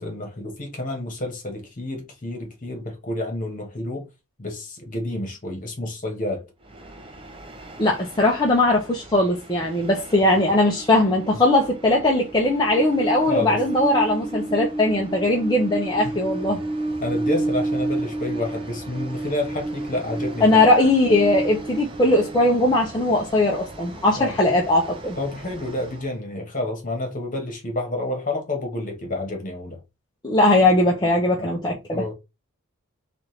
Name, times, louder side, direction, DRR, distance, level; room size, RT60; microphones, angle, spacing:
voice 1, 0.0-4.1 4.4-6.5 13.3-13.6 16.0-16.2 16.5-16.6 17.0-20.6 24.2-24.4 25.2-29.8 31.4-31.5 31.9-32.1, left 2 dB, 35° left, 1.2 m, -29 dB
Train, 6.6-26.1, right 2 dB, 25° right, 0.5 m, -32 dB
voice 2, 7.8-16.6 20.4-25.2 30.2-32.0, left 2 dB, 20° left, 0.6 m, -19 dB
4.2 x 2.5 x 3.2 m
head